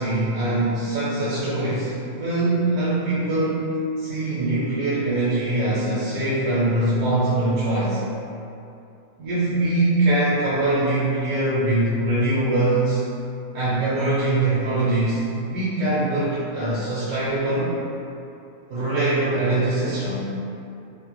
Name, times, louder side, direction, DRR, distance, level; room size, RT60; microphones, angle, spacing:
voice 1, 0.0-8.0 9.2-13.0 13.5-15.2 15.5-17.7 18.7-20.3, right 2 dB, 80° right, -10 dB, 1.1 m, -22 dB
2.7 x 2.1 x 2.9 m, 2.7 s
omnidirectional pair, 1.5 m